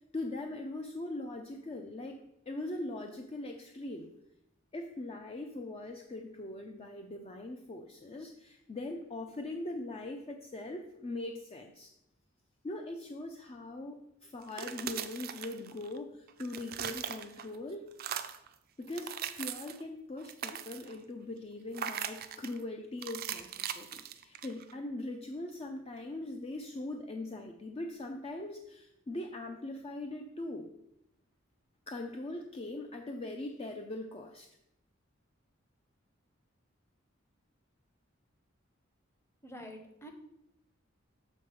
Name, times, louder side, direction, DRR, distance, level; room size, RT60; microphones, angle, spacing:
voice 1, 0.1-4.1 4.7-11.9 12.6-17.9 18.8-30.7 31.9-34.5, left 2 dB, 30° left, 4 dB, 0.5 m, -41 dB
sound 1, 14.4-16.0 16.3-17.6 17.9-18.5 18.9-19.8 20.2-21.0 21.7-22.6 23.0-24.7, right 9 dB, 50° right, 0.4 m, -40 dB
voice 2, 39.4-40.1, equal, 15° left, 4 dB, 0.8 m, -47 dB
7.1 x 3.7 x 5.6 m, 0.83 s
head